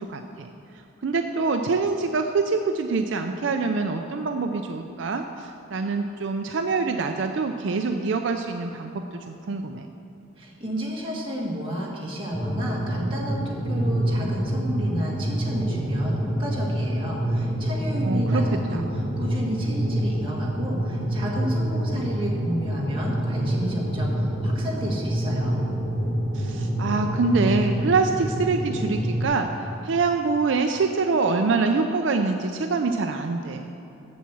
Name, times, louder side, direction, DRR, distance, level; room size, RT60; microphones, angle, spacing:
voice 1, 0.1-0.5 1.0-9.9 18.0-18.4 18.7-18.8 26.3-33.6, right 4 dB, 70° right, 5 dB, 0.4 m, -25 dB
voice 2, 10.4-25.6, equal, 25° right, -4 dB, 1.7 m, -31 dB
sound 1, 12.3-29.2, right 1 dB, 20° left, 2.0 m, -27 dB
7.4 x 7.2 x 7.0 m, 2.8 s
head